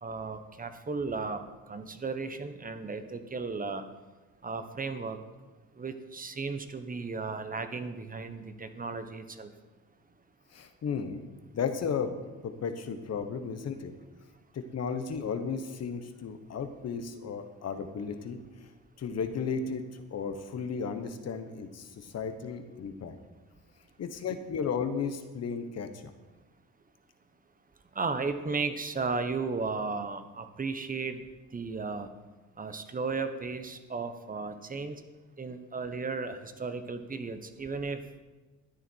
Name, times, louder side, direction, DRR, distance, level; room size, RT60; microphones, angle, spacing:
voice 1, 0.0-1.4 1.7-3.8 4.4-5.2 5.8-9.5 27.9-31.2 31.5-32.1 32.6-35.0 35.4-38.2, right 4 dB, 30° right, 9 dB, 1.2 m, -35 dB
voice 2, 10.5-11.3 11.5-13.9 14.5-18.7 19.0-19.8 20.1-23.1 24.0-26.1, left 6 dB, 55° left, 8 dB, 1.3 m, -34 dB
13.0 x 10.0 x 4.6 m, 1.2 s
cardioid pair, 90°, 30 cm